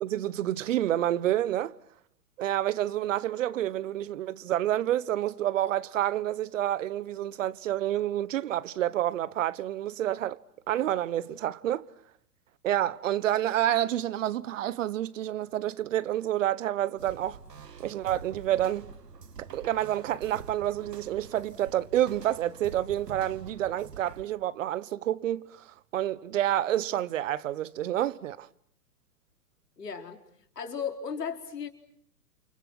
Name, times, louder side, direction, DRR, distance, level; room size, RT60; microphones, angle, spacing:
voice 1, 0.0-1.7 2.4-10.4 10.7-11.9 12.6-17.4 17.8-18.9 19.4-28.5, right 12 dB, 50° right, 1.2 m, -29 dB
sound 1, 17.0-24.2, right 5 dB, 85° right, 2.2 m, -46 dB
voice 2, 29.8-30.2 30.6-31.7, left 6 dB, 80° left, 4.3 m, -35 dB
29.5 x 29.0 x 6.1 m
hypercardioid pair, 125°, 47 cm